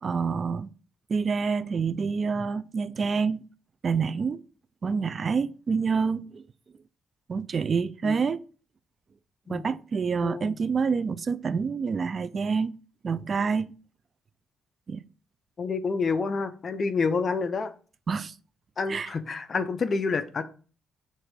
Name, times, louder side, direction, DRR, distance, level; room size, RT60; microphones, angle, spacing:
voice 1, 0.0-0.7 1.1-3.4 3.8-4.4 4.8-6.4 7.3-8.4 9.5-12.7 13.0-13.7 14.9-15.0 18.1-18.3 18.9-19.1, right 5 dB, 40° right, 0.4 m, -27 dB
voice 2, 10.2-10.6 15.6-17.7 18.8-20.4, left 4 dB, 40° left, 0.7 m, -28 dB
6.7 x 3.8 x 4.7 m
cardioid pair, 90°, 0 cm